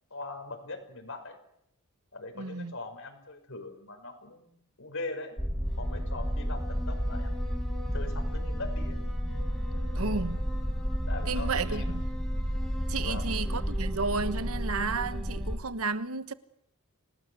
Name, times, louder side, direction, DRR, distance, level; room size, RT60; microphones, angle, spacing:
voice 1, 0.1-1.4 2.1-5.4 5.8-9.0 9.8-10.2 11.1-11.9 13.0-13.3, left 2 dB, 65° left, 5.7 m, -41 dB
voice 2, 2.4-2.7 9.9-10.4 11.3-12.0 12.9-16.3, right 4 dB, 75° right, 1.3 m, -32 dB
sound 1, 5.4-15.6, equal, ahead, 4.2 m, -31 dB
28.0 x 19.0 x 8.1 m
head